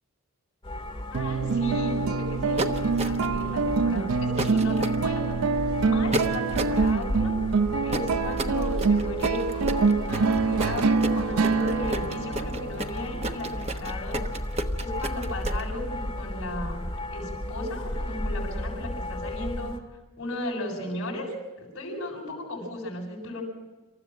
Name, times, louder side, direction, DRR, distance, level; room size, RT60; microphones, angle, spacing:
sound 1, 0.6-19.8, left 1 dB, 25° left, 1.8 m, -34 dB
voice 1, 1.1-5.4 5.8-7.3 7.8-14.2 14.8-16.8 17.1-19.8 20.2-23.4, left 1 dB, 55° left, -2 dB, 7.6 m, -35 dB
sound 2, 1.1-13.9, right 4 dB, 80° right, 0.6 m, -26 dB
sound 3, 2.6-3.4 4.4-5.0 6.1-6.8 7.9-15.6, right 1 dB, 30° right, 1.1 m, -31 dB
27.5 x 14.0 x 7.4 m, 1.2 s
head